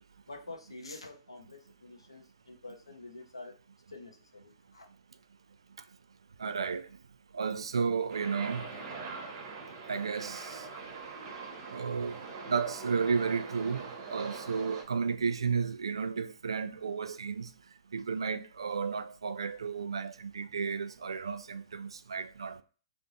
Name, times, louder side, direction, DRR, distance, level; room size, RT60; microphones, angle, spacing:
voice 1, 0.3-3.6 3.9-4.9, left 2 dB, 85° left, 0.7 m, -47 dB
voice 2, 6.4-6.8 7.3-8.6 9.9-10.6 11.7-12.2 12.5-17.5 17.9-22.6, right 5 dB, 80° right, 0.3 m, -33 dB
sound 1, 8.1-14.8, right 4 dB, 50° right, 1.0 m, -43 dB
3.3 x 2.6 x 3.9 m
figure-of-eight pair, 110°, 3 cm